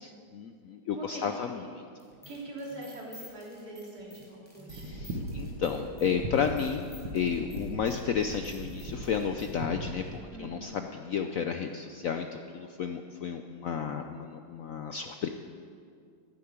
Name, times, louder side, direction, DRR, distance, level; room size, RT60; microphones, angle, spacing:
voice 1, 0.0-1.6 4.7-15.3, left 7 dB, 80° left, 6 dB, 0.7 m, -32 dB
voice 2, 0.9-1.2 1.6-1.7 2.3-4.9 10.3-10.9 11.2-11.5, right 1 dB, 50° right, -3 dB, 3.5 m, -43 dB
sound 1, 2.0-9.5, equal, 5° left, 4.6 m, -52 dB
sound 2, 4.7-10.2, right 1 dB, 85° right, 2.3 m, -39 dB
11.5 x 10.5 x 8.8 m, 2.3 s
omnidirectional pair, 2.2 m